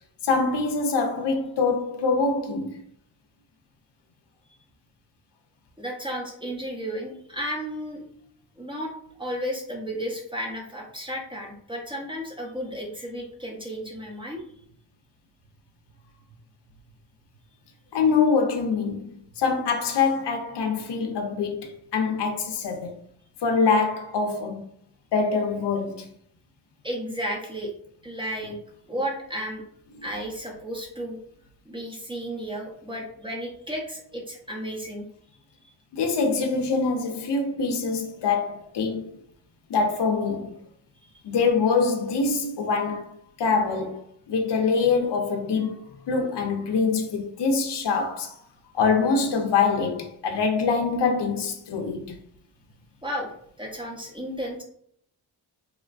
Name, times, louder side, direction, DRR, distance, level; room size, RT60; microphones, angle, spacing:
voice 1, 0.2-2.8 17.9-22.9 23.4-24.6 25.1-26.1 35.9-39.1 39.7-40.6 41.2-43.1 43.4-48.4 48.7-52.2, left 4 dB, 70° left, 0.6 m, -24 dB
voice 2, 5.8-8.0 8.6-8.9 9.2-14.4 26.8-27.7 28.0-28.6 28.9-29.6 30.0-31.2 31.7-35.1 53.0-54.6, equal, 10° right, 0.8 m, -33 dB
3.0 x 2.1 x 2.5 m
cardioid pair, 55°, 43 cm